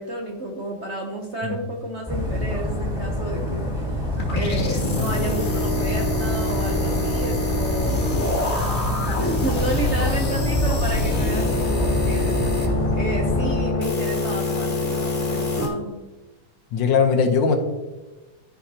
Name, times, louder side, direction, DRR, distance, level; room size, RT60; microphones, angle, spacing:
voice 1, 0.0-8.1 8.4-16.0, right 1 dB, 55° right, 0 dB, 0.8 m, -31 dB
Dog, 2.1-13.6, left 1 dB, ahead, 1.8 m, -26 dB
sound 1, 4.2-15.7, left 2 dB, 35° left, 1.5 m, -25 dB
voice 2, 16.7-17.5, left 5 dB, 70° left, 5 dB, 1.5 m, -19 dB
13.0 x 4.9 x 2.8 m, 1.1 s
omnidirectional pair, 2.2 m